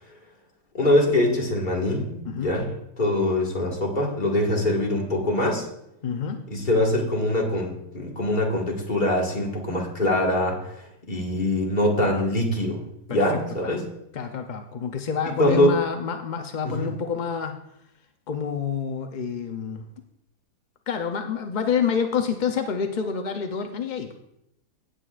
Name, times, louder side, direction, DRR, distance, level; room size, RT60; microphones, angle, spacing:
voice 1, 0.7-5.7 6.5-12.8 13.1-13.9 15.4-15.7 16.6-16.9, left 1 dB, 30° left, -1 dB, 1.9 m, -23 dB
voice 2, 6.0-6.4 13.1-13.2 13.6-13.8 14.1-17.6 18.3-19.8 20.9-24.1, left 6 dB, 55° left, 5 dB, 0.5 m, -28 dB
16.5 x 8.3 x 2.4 m, 0.78 s
omnidirectional pair, 1.6 m